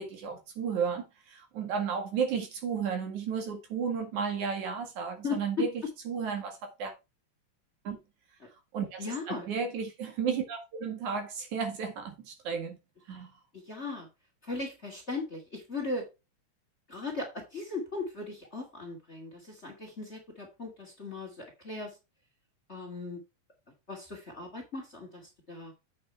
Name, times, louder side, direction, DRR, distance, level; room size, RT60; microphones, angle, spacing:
voice 1, 0.0-6.9 7.8-8.0 8.7-12.8 13.1-13.3, right 6 dB, 70° right, 3.3 m, -33 dB
voice 2, 5.2-5.7 9.0-9.5 13.7-14.1 14.4-16.0 16.9-21.9 22.7-23.2 23.9-25.7, left 3 dB, 25° left, 2.2 m, -37 dB
8.7 x 5.8 x 4.5 m
omnidirectional pair, 3.6 m